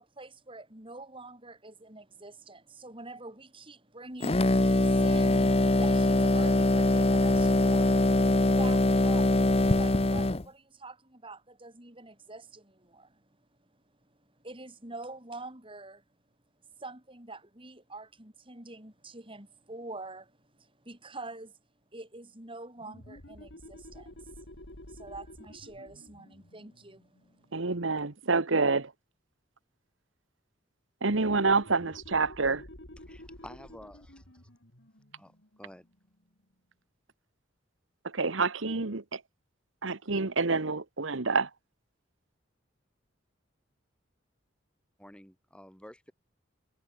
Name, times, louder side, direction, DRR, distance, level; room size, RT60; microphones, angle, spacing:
voice 1, 0.0-13.3 13.6-13.7 14.3-16.0 16.8-21.5 21.9-27.5, right 2 dB, 25° right, 6.8 m, -46 dB
sound 1, 4.2-10.4, left 2 dB, 30° left, 0.9 m, -23 dB
sound 2, 22.8-28.1 31.1-36.4, left 1 dB, 65° left, 4.3 m, -51 dB
voice 2, 27.5-28.9 31.0-32.6 38.0-39.2 39.8-41.5, right 4 dB, 75° right, 1.3 m, -27 dB
voice 3, 33.0-34.2 35.2-35.3 35.6-35.9 45.0-46.1, left 1 dB, 5° left, 4.9 m, -50 dB
head